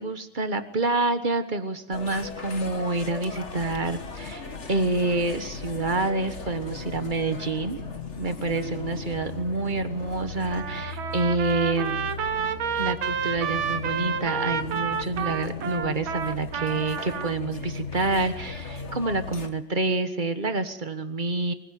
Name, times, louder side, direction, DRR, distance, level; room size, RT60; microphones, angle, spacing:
voice 1, 0.0-7.8 8.2-12.1 12.7-21.5, right 3 dB, 25° right, 9 dB, 1.3 m, -27 dB
sound 1, 1.9-19.5, left 4 dB, 35° left, 1.8 m, -37 dB
Trumpet, 10.5-17.3, right 7 dB, 85° right, 2.0 m, -30 dB
24.0 x 16.0 x 9.3 m, 0.85 s
omnidirectional pair, 2.2 m